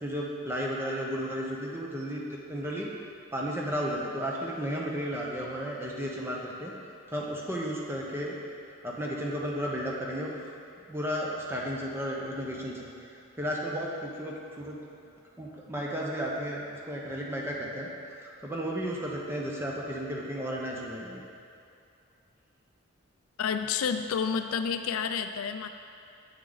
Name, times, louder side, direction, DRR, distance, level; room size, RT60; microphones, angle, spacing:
voice 1, 0.0-2.9 3.3-8.4 8.8-10.3 10.9-12.9 13.4-14.8 15.4-17.9 18.2-21.2, equal, 10° right, -3 dB, 0.9 m, -33 dB
voice 2, 23.4-25.7, left 6 dB, 85° left, 8 dB, 0.4 m, -30 dB
7.9 x 6.6 x 4.0 m, 2.6 s
head